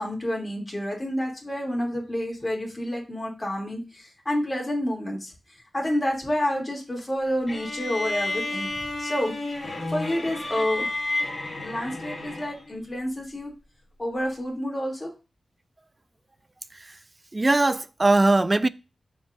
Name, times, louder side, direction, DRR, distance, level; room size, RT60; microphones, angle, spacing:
voice 1, 0.0-9.3 9.9-10.9 11.6-13.5 14.0-15.1, equal, 25° left, 2.7 m, -29 dB
sound 1, 7.5-12.7, left 2 dB, 45° left, 1.8 m, -31 dB
voice 2, 17.3-18.7, right 2 dB, 30° right, 0.4 m, -20 dB
13.5 x 4.6 x 2.6 m
wide cardioid pair, 80°, 0 cm